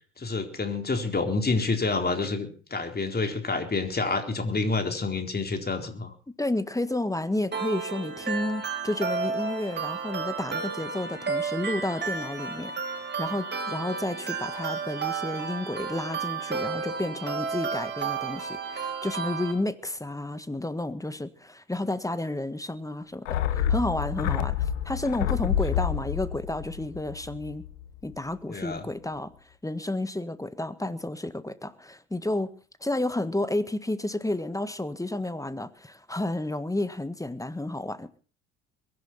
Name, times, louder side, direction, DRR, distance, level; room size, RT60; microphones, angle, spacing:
voice 1, 0.2-6.1 28.5-28.8, left 3 dB, 25° left, 4.1 m, -28 dB
voice 2, 6.4-27.6 28.0-29.3 29.6-32.5 32.8-38.1, left 1 dB, 10° left, 1.6 m, -31 dB
sound 1, 7.5-19.5, right 5 dB, 30° right, 5.8 m, -32 dB
sound 2, 23.3-27.9 28.1-28.2, left 9 dB, 80° left, 1.5 m, -28 dB
22.5 x 11.0 x 4.3 m
hypercardioid pair, 60°, 37 cm